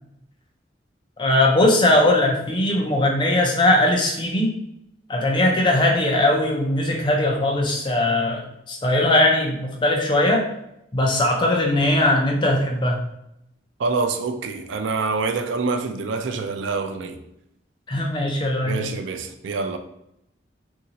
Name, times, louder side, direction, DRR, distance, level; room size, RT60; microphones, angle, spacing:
voice 1, 1.2-4.5 5.1-10.4 10.9-13.0 17.9-18.9, left 1 dB, 25° left, 0.5 m, -20 dB
voice 2, 13.8-17.2 18.6-19.8, right 4 dB, 90° right, 0.3 m, -26 dB
2.8 x 2.6 x 2.8 m
head